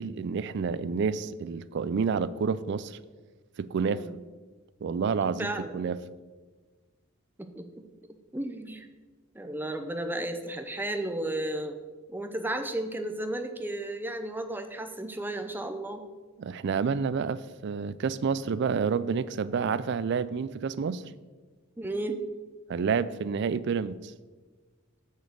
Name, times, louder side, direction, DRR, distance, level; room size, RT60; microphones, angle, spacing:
voice 1, 0.0-3.0 3.6-4.0 4.8-6.0 16.4-21.0 22.7-24.1, right 5 dB, 55° right, 17 dB, 0.4 m, -29 dB
voice 2, 3.9-4.2 5.4-5.8 7.4-7.7 8.3-8.9 9.3-11.8 12.1-16.0 21.8-22.2, right 1 dB, 10° right, 7 dB, 0.6 m, -33 dB
7.0 x 6.4 x 6.6 m, 1.4 s
head